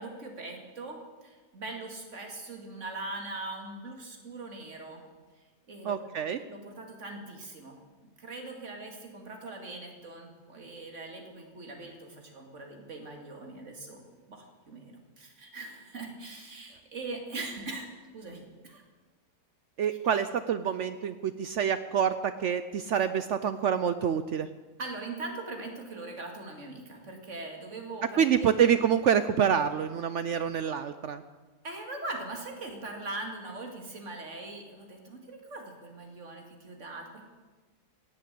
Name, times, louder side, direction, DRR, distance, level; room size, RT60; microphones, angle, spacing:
voice 1, 0.0-5.0 5.7-6.2 6.5-14.0 14.3-17.9 18.1-18.8 24.8-28.5 31.6-37.2, right 2 dB, 50° right, 2 dB, 2.5 m, -41 dB
voice 2, 5.8-6.4 19.8-24.5 28.2-31.2, right 8 dB, 65° right, 11 dB, 0.7 m, -27 dB
17.0 x 7.7 x 8.5 m, 1.3 s
omnidirectional pair, 1.7 m